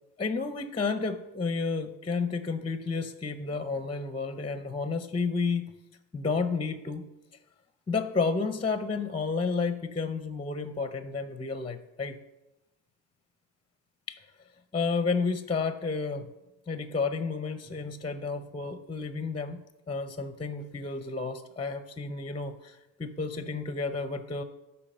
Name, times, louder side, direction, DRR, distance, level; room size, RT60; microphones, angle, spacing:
voice 1, 0.2-5.8 6.1-7.1 7.9-12.2 14.1-14.2 14.7-16.3 16.7-19.6 19.9-24.4, left 4 dB, 15° left, 10 dB, 0.6 m, -31 dB
8.5 x 5.5 x 6.6 m, 0.99 s
supercardioid pair, 85°, 40 cm